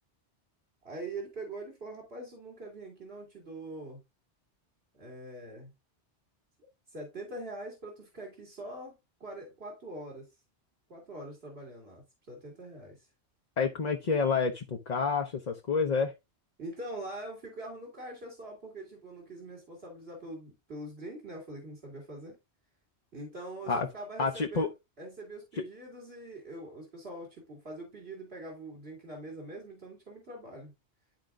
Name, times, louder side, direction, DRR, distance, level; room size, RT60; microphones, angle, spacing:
voice 1, 0.8-4.0 4.9-5.7 6.9-10.3 10.9-13.1 16.6-22.4 23.1-24.7 25.0-30.7, right 1 dB, 65° right, 2.5 m, -43 dB
voice 2, 13.6-16.1 23.7-23.9 24.2-24.7 25.6-25.7, left 5 dB, 40° left, 0.9 m, -29 dB
12.0 x 4.3 x 2.5 m
omnidirectional pair, 1.1 m